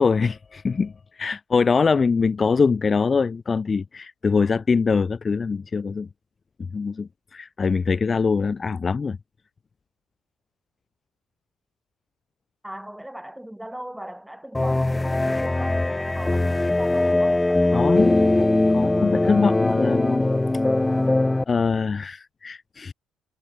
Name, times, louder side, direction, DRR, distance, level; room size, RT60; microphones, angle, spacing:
voice 1, 0.0-6.1 6.6-9.2 17.7-18.1 18.7-20.3 21.5-22.9, left 5 dB, 35° left, 0.3 m, -23 dB
voice 2, 12.6-18.1, right 1 dB, 5° right, 6.8 m, -39 dB
sound 1, 14.5-21.4, left 2 dB, 15° left, 0.8 m, -21 dB
hypercardioid pair, 55°, 0 cm